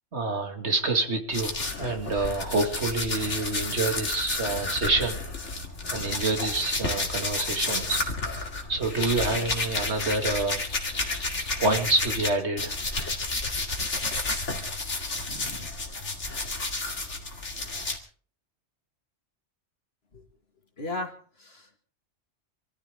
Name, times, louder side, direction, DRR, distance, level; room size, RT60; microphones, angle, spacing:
voice 1, 0.1-5.2 5.9-8.4 8.7-10.6 11.6-12.8 15.3-15.7, right 3 dB, 65° right, 5 dB, 2.5 m, -27 dB
sound 1, 1.3-12.3 12.6-18.0, left 3 dB, 75° left, 2.7 m, -31 dB
voice 2, 20.8-21.8, left 2 dB, 55° left, 5 dB, 2.4 m, -36 dB
26.5 x 14.5 x 3.7 m, 0.42 s
omnidirectional pair, 1.2 m